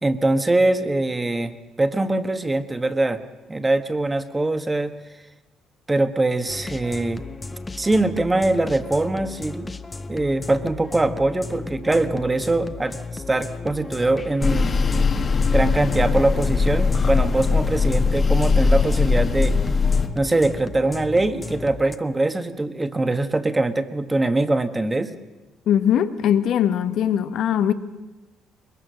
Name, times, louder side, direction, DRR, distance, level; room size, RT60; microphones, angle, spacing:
voice 1, 0.0-3.2 3.5-4.9 5.9-7.2 7.8-9.7 10.1-14.8 15.5-19.5 20.1-25.1, right 2 dB, 15° right, 8 dB, 1.4 m, -22 dB
sound 1, 6.5-22.0, left 4 dB, 25° left, 1.0 m, -35 dB
sound 2, 14.4-20.1, left 4 dB, 40° left, 1.6 m, -20 dB
voice 2, 25.7-27.7, left 9 dB, 70° left, 10 dB, 1.1 m, -20 dB
22.0 x 21.5 x 6.4 m, 1.1 s
cardioid pair, 85°, 0 cm